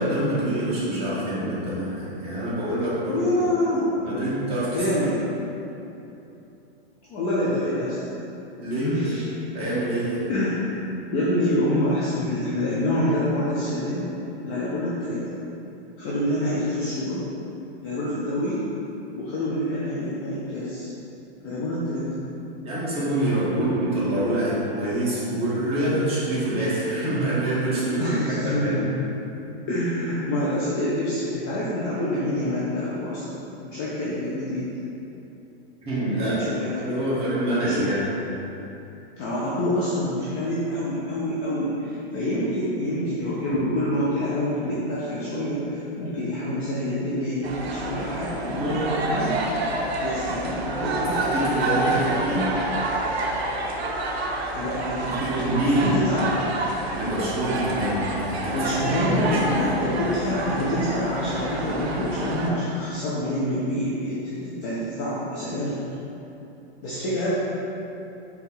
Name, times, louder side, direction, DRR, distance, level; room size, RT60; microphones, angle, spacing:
voice 1, 0.0-3.2 4.0-4.8 8.6-9.0 9.5-10.2 22.6-28.8 35.8-36.4 36.9-38.0 48.5-48.9 51.0-52.5 55.0-56.1 56.9-59.7, right 1 dB, 20° right, -9 dB, 1.1 m, -26 dB
voice 2, 3.1-3.9 4.7-5.2 7.1-8.1 8.8-9.2 10.2-10.6 11.1-14.1 14.4-15.2 16.0-17.3 17.8-18.7 19.2-20.9 21.4-22.1 23.5-23.7 28.0-28.8 29.7-33.4 33.6-34.7 36.2-36.9 37.4-37.8 39.2-49.4 49.9-51.2 51.9-52.0 54.5-56.3 58.5-65.8 66.8-67.4, left 1 dB, 20° left, -8 dB, 0.3 m, -27 dB
sound 1, 47.4-62.5, right 2 dB, 80° right, 0.7 m, -28 dB
4.1 x 2.8 x 3.6 m, 3.0 s
hypercardioid pair, 145°, 31 cm